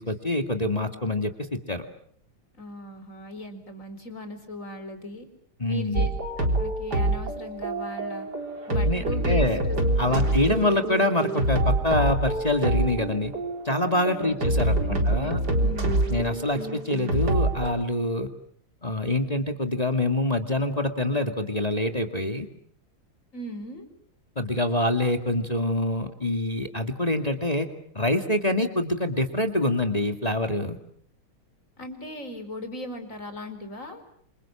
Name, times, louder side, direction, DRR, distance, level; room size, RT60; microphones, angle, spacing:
voice 1, 0.0-1.9 5.6-6.1 8.9-9.6 10.0-13.3 13.6-15.4 16.1-18.3 18.8-22.5 24.4-27.7 27.9-30.8, left 1 dB, 20° left, 6 dB, 2.1 m, -25 dB
voice 2, 2.5-5.3 5.7-6.1 6.4-8.3 8.7-10.4 14.2-16.2 23.3-23.9 31.8-34.0, left 1 dB, 35° left, 8 dB, 4.8 m, -38 dB
sound 1, 5.9-17.7, right 1 dB, 50° right, 4.3 m, -26 dB
28.5 x 28.0 x 7.3 m, 0.65 s
omnidirectional pair, 2.2 m